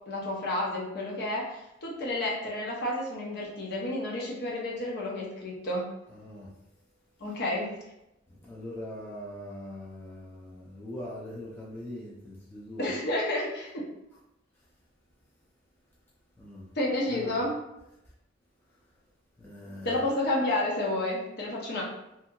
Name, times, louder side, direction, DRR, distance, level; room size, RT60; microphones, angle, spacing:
voice 1, 0.1-5.8 7.2-7.7 12.8-13.8 16.8-17.5 19.8-21.8, left 1 dB, 55° left, -3 dB, 0.7 m, -30 dB
voice 2, 6.1-6.5 8.3-12.9 16.4-16.7 17.1-17.4 19.4-20.0, left 1 dB, 10° left, -6 dB, 0.4 m, -41 dB
2.7 x 2.7 x 2.5 m, 0.88 s
head